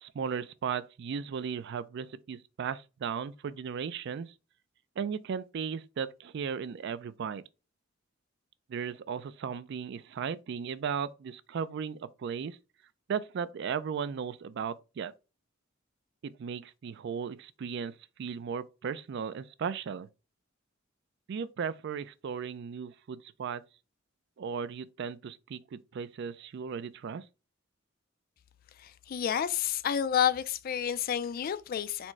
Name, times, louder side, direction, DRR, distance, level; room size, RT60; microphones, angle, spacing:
voice 1, 0.0-4.3 5.0-7.4 8.7-12.6 13.1-15.1 16.2-17.9 18.2-20.1 21.3-23.6 24.4-27.2, right 6 dB, 60° right, 0.3 m, -36 dB
voice 2, 28.8-32.1, left 9 dB, 45° left, 0.3 m, -30 dB
4.3 x 2.0 x 4.5 m
head